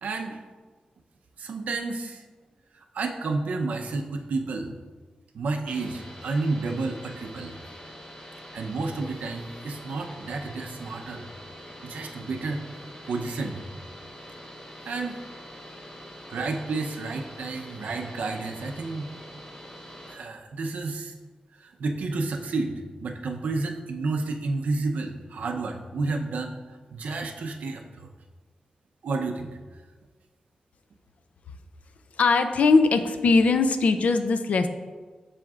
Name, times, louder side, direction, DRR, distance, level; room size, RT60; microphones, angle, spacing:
voice 1, 0.0-0.4 1.4-2.2 2.7-4.7 5.3-7.6 8.5-11.3 11.8-12.7 13.1-13.6 14.8-15.2 16.3-19.2 20.1-21.1 21.6-28.1 29.0-29.6, right 3 dB, 85° right, 3 dB, 0.6 m, -31 dB
sound 1, 5.7-20.1, equal, 40° left, 1.0 m, -44 dB
voice 2, 32.2-34.7, left 4 dB, 65° left, 8 dB, 0.5 m, -20 dB
7.6 x 6.3 x 2.4 m, 1.4 s
wide cardioid pair, 160°, 3 cm